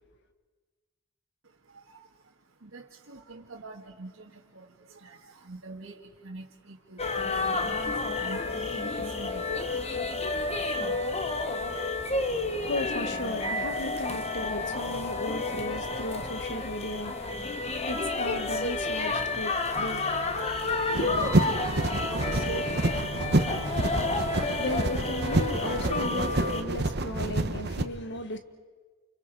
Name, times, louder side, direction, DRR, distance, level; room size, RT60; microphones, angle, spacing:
voice 1, 1.4-10.4 21.4-23.2, right 3 dB, 85° right, 2.0 m, -45 dB
sound 1, 7.0-26.6, left 3 dB, 30° left, 1.5 m, -30 dB
voice 2, 12.3-21.2 24.2-28.4, left 1 dB, 60° left, 1.8 m, -36 dB
sound 2, 20.9-27.8, right 2 dB, 55° right, 1.2 m, -28 dB
29.5 x 29.0 x 5.0 m
head